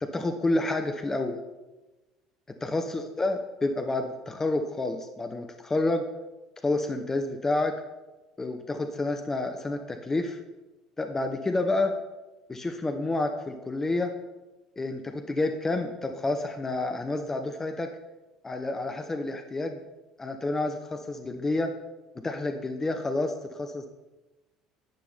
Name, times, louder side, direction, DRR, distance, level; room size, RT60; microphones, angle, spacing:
voice 1, 0.0-1.4 2.6-6.1 6.6-7.8 8.4-10.4 11.0-11.9 12.5-14.1 14.8-17.9 18.4-19.8 20.2-21.7 22.1-23.9, left 2 dB, 20° left, 5 dB, 1.2 m, -29 dB
12.0 x 10.0 x 4.3 m, 1.1 s
figure-of-eight pair, 60°, 2 cm